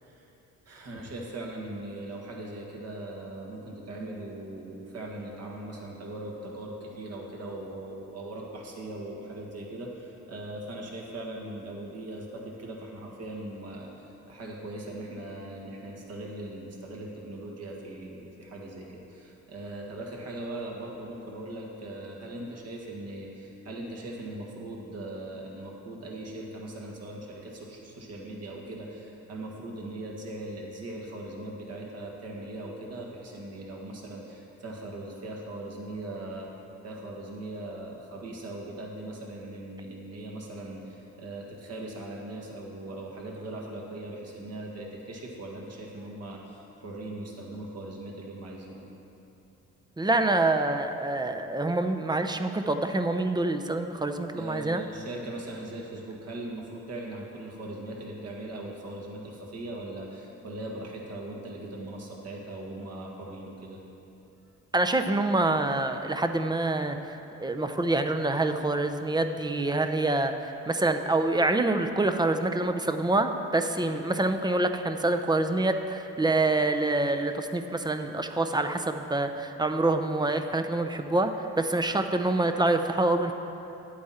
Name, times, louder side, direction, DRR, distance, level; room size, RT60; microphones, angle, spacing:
voice 1, 0.7-36.5 36.8-48.9 54.4-63.8, right 1 dB, 55° right, -1 dB, 1.8 m, -40 dB
voice 2, 50.0-54.8 64.7-83.3, right 2 dB, 15° right, 7 dB, 0.5 m, -26 dB
10.5 x 8.5 x 4.3 m, 3.0 s
cardioid pair, 90°, 30 cm